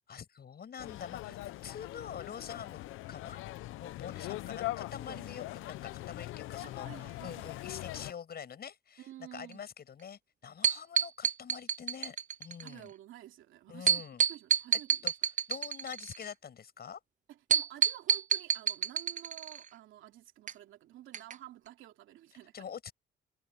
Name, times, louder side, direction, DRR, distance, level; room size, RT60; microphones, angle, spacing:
voice 1, 0.1-2.8 3.1-3.4 3.7-9.1 9.3-12.9 13.7-14.2 15.0-15.1 15.5-17.0 22.5-22.9, left 7 dB, 50° left, 6.5 m, -45 dB
sound 1, 0.8-8.1, left 16 dB, 90° left, 0.7 m, -41 dB
voice 2, 6.6-7.5 9.0-9.7 12.6-15.1 17.3-22.7, right 13 dB, 85° right, 2.8 m, -51 dB
sound 2, 10.6-12.7 13.9-16.3 17.5-19.7 20.5-20.6 21.1-21.3 21.7-21.8, right 7 dB, 40° right, 0.6 m, -28 dB
cardioid pair, 90°, 20 cm